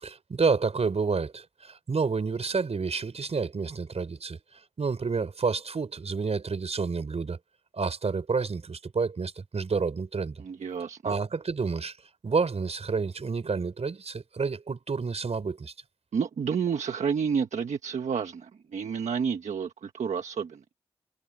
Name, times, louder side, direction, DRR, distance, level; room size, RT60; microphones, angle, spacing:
voice 1, 0.0-4.4 4.8-7.4 7.7-10.4 11.0-11.9 12.2-15.7, right 4 dB, 65° right, 4.8 m, -29 dB
voice 2, 10.4-11.1 16.1-20.6, right 6 dB, 80° right, 1.4 m, -30 dB
cardioid pair, 45°, 12 cm